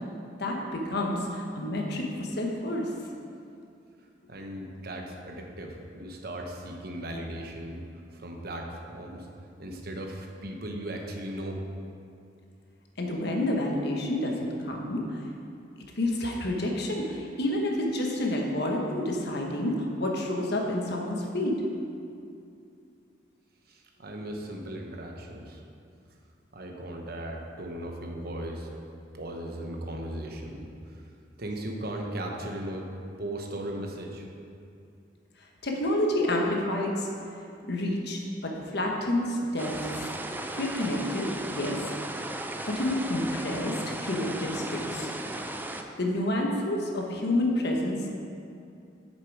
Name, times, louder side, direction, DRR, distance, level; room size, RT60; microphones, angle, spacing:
voice 1, 0.4-2.9 13.0-15.2 16.0-21.6 35.6-37.1 37.7-41.8 42.7-45.1 46.0-48.1, left 1 dB, 60° left, 0 dB, 1.2 m, -29 dB
voice 2, 4.3-7.8 8.1-9.3 9.6-11.6 23.7-25.6 26.5-28.7 29.1-31.0 31.4-32.9 33.2-34.3, right 1 dB, 55° right, 2 dB, 1.0 m, -37 dB
sound 1, 39.6-45.8, right 1 dB, 10° right, 0.4 m, -36 dB
8.3 x 6.8 x 4.7 m, 2.5 s
head